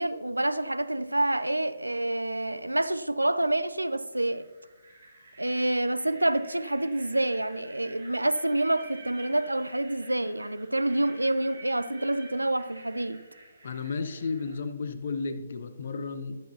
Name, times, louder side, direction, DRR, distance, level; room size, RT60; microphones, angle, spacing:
voice 1, 0.0-4.5 5.4-13.2, right 1 dB, 85° right, 0.5 m, -27 dB
sound 1, 1.7-2.1 3.6-3.7 4.1-14.6, right 2 dB, 60° right, 3.3 m, -51 dB
voice 2, 13.6-16.4, left 4 dB, 50° left, 0.9 m, -33 dB
14.0 x 11.0 x 2.8 m
figure-of-eight pair, 135°, 0 cm